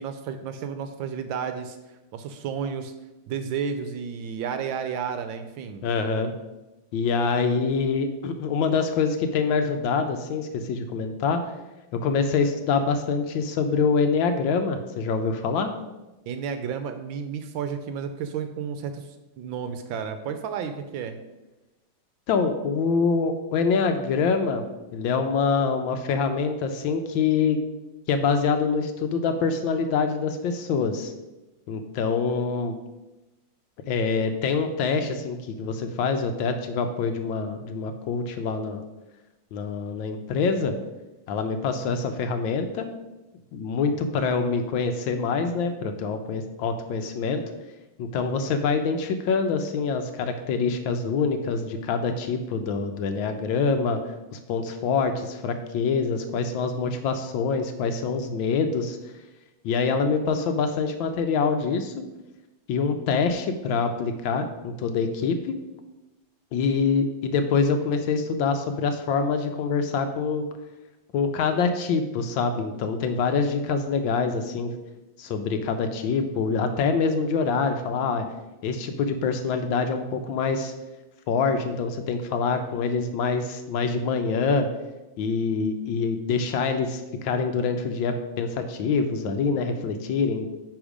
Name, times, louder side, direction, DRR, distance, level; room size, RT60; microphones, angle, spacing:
voice 1, 0.0-1.8 2.1-2.9 3.3-5.8 16.3-21.2, right 7 dB, 75° right, 8 dB, 1.3 m, -32 dB
voice 2, 5.8-6.3 6.9-11.4 11.9-15.7 22.3-24.6 24.9-27.6 28.1-31.1 31.7-32.8 33.9-38.8 39.5-40.7 41.3-42.9 43.5-47.4 48.0-54.0 54.3-59.0 59.6-61.9 62.7-65.5 66.5-70.4 71.1-74.7 75.2-78.3 78.6-80.7 81.3-84.7 85.2-90.5, left 5 dB, 75° left, 7 dB, 1.3 m, -25 dB
9.7 x 3.6 x 5.0 m, 1.1 s
omnidirectional pair, 2.3 m